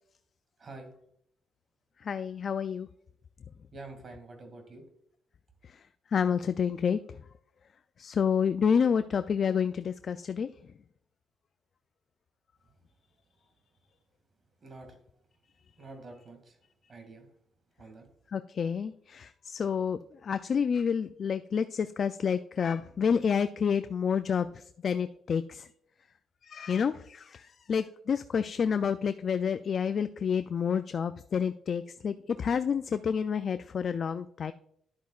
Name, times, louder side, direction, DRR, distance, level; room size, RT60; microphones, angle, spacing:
voice 1, 0.6-0.9 3.7-4.8 12.6-12.7 14.6-15.0 15.8-16.6 16.9-17.3 17.8-18.1, right 2 dB, 45° right, 5 dB, 2.2 m, -47 dB
voice 2, 2.0-2.9 5.7-5.8 6.1-7.0 8.0-10.5 18.3-25.7 26.4-34.5, left 7 dB, 50° left, 11 dB, 0.3 m, -29 dB
10.5 x 8.0 x 2.4 m, 0.69 s
cardioid pair, 90°, 0 cm